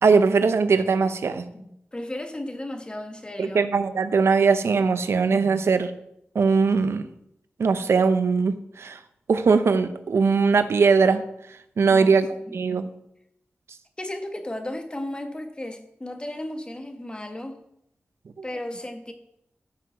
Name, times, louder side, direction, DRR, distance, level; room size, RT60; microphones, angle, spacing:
voice 1, 0.0-1.4 3.4-5.9 6.3-7.0 7.6-9.0 9.3-11.2 11.8-12.9 18.4-18.5, right 5 dB, 90° right, 11 dB, 0.8 m, -20 dB
voice 2, 1.5-3.6 11.9-12.2 14.0-17.6 18.4-19.1, left 1 dB, 20° left, 6 dB, 1.5 m, -34 dB
14.0 x 6.0 x 6.3 m, 0.77 s
wide cardioid pair, 105°, 4 cm